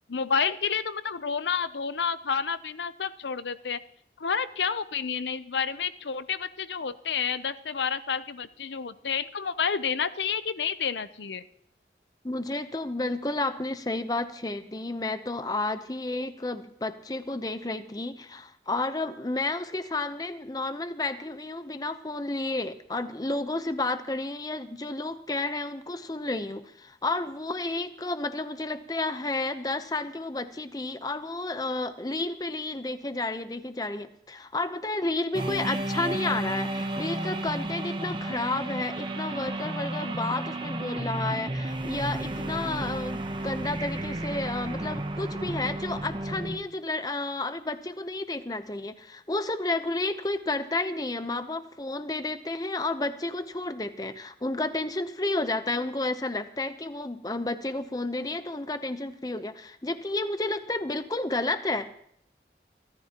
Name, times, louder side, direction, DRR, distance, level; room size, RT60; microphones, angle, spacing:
voice 1, 0.1-3.8 4.2-11.4, left 6 dB, 85° left, 13 dB, 0.7 m, -30 dB
voice 2, 12.2-61.9, left 2 dB, 20° left, 11 dB, 0.7 m, -31 dB
sound 1, 35.3-46.6, right 1 dB, 30° right, 1.0 m, -32 dB
25.0 x 13.5 x 3.0 m, 0.69 s
head